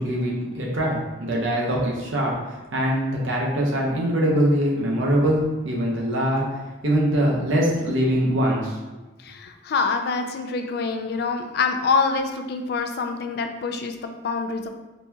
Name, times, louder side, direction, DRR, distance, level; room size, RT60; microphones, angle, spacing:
voice 1, 0.0-5.4 5.6-8.8, equal, 90° right, -2 dB, 0.8 m, -23 dB
voice 2, 9.2-13.9 14.2-14.7, left 4 dB, 55° left, 6 dB, 0.3 m, -25 dB
4.0 x 2.3 x 2.7 m, 1.1 s
head